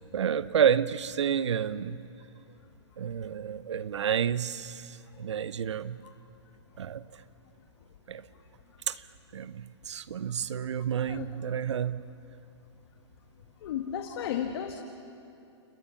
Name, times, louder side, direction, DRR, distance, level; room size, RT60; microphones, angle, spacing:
voice 1, 0.1-2.0 3.0-6.0 6.8-7.0 8.1-8.2 8.9-9.0 9.3-12.0, right 8 dB, 75° right, 16 dB, 0.8 m, -29 dB
voice 2, 13.6-14.8, left 9 dB, 55° left, 4 dB, 1.7 m, -33 dB
29.0 x 25.0 x 7.1 m, 2.7 s
hypercardioid pair, 130°, 15 cm